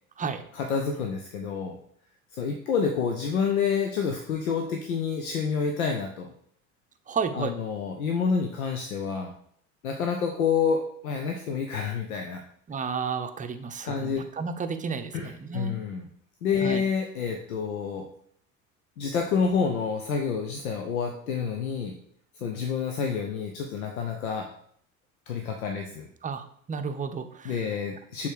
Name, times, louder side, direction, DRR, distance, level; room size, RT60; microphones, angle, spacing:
voice 1, 0.5-1.8 2.4-6.3 7.3-9.3 9.8-12.4 13.8-14.3 15.1-16.0 16.4-18.1 19.0-21.9 22.4-24.5 25.3-26.1 27.4-28.3, left 6 dB, 85° left, 4 dB, 0.7 m, -28 dB
voice 2, 7.1-7.6 12.7-15.8 16.6-16.8 26.2-27.7, right 5 dB, 20° right, 8 dB, 0.6 m, -32 dB
6.6 x 3.6 x 4.6 m, 0.65 s
hypercardioid pair, 70°, 42 cm